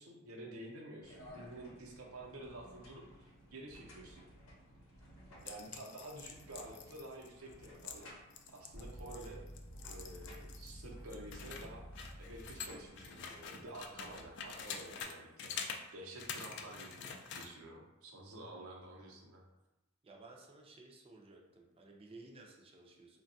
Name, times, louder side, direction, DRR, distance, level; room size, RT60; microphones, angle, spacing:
voice 1, 0.0-3.3 3.5-4.2 5.4-8.1 8.5-9.4 9.8-11.8 12.2-19.4, right 1 dB, 90° right, -1 dB, 0.7 m, -50 dB
sound 1, 1.0-15.0, equal, 70° left, 0.7 m, -58 dB
sound 2, 5.4-10.8 11.1-15.1 15.4-15.8 16.2-17.5, left 6 dB, 55° left, 0.3 m, -46 dB
sound 3, 8.7-12.7, equal, 35° left, 0.7 m, -51 dB
voice 2, 20.0-23.2, right 2 dB, 25° right, 0 dB, 0.4 m, -56 dB
3.3 x 2.2 x 2.6 m, 0.98 s
head